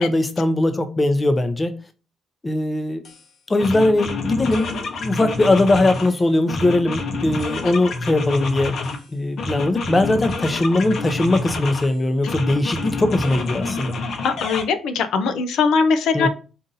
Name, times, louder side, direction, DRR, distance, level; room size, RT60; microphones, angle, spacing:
voice 1, 0.0-1.8 2.4-3.0 3.5-8.8 9.1-13.9 16.1-16.3, left 2 dB, 25° left, 0.6 m, -20 dB
sound 1, 3.0-3.2 3.6-6.1 6.5-9.0 9.4-11.9 12.3-14.6, left 3 dB, 65° left, 0.9 m, -28 dB
voice 2, 14.2-16.3, left 5 dB, 85° left, 0.5 m, -20 dB
4.0 x 2.6 x 3.9 m
cardioid pair, 90°, 0 cm